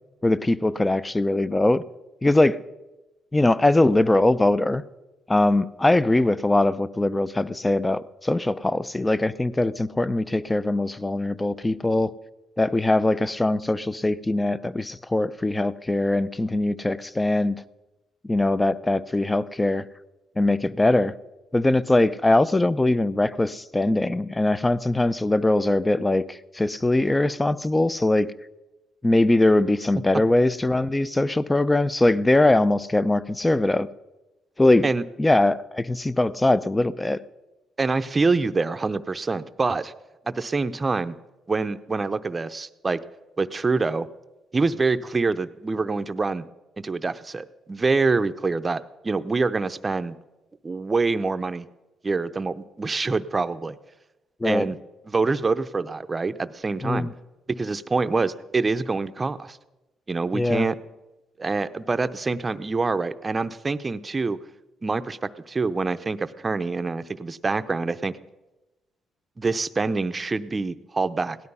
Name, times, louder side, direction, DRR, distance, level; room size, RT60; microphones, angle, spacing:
voice 1, 0.2-1.8 2.2-2.6 3.3-4.8 5.3-12.1 12.6-17.6 18.2-19.8 20.4-21.1 21.5-28.3 29.0-33.9 34.6-34.9 35.2-37.2 54.4-54.7 56.8-57.1 60.3-60.7, left 2 dB, 15° left, 0.6 m, -21 dB
voice 2, 37.8-39.9 40.3-41.1 41.5-43.0 43.4-44.1 44.5-46.4 46.8-50.1 50.6-51.7 52.0-53.8 54.4-54.8 55.1-57.1 57.5-59.6 60.1-60.7 61.4-64.4 64.8-68.1 69.4-71.4, right 3 dB, 25° right, 0.7 m, -25 dB
17.5 x 12.0 x 5.5 m
cardioid pair, 90°, 0 cm